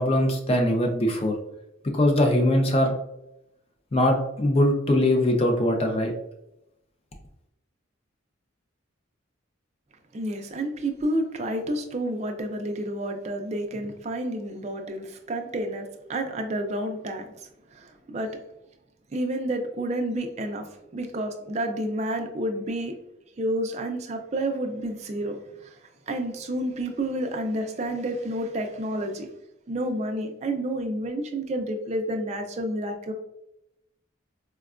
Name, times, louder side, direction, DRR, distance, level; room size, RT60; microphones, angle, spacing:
voice 1, 0.0-1.3 1.9-2.9 3.9-6.1, left 1 dB, 30° left, 3 dB, 0.5 m, -21 dB
voice 2, 10.1-17.3 17.7-18.3 19.1-20.7 20.9-22.9 23.4-25.4 25.6-25.8 26.1-29.3 29.7-33.1, right 1 dB, 35° right, 4 dB, 0.4 m, -30 dB
4.3 x 2.2 x 2.4 m, 0.85 s
head